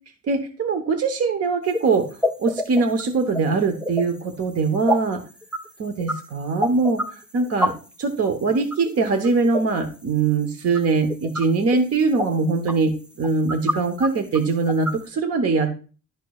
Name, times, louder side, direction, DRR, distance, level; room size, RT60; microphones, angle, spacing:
voice 1, 0.3-2.1 2.4-5.2 5.8-7.7 8.0-15.7, right 4 dB, 55° right, 5 dB, 1.0 m, -22 dB
sound 1, 1.7-1.8 2.2-4.0 4.9-5.2 5.4-5.7 6.0-6.1 6.6-7.0 7.4-7.7 8.2-8.3 8.6-9.7 10.7-10.8 11.1-11.4 11.7-11.8 12.2-12.3 12.7-12.8 13.2-13.7 14.0-14.1 14.3-14.4 14.7-14.9, equal, 5° right, 0.6 m, -24 dB
11.5 x 4.5 x 2.3 m, 0.37 s
cardioid pair, 90°, 30 cm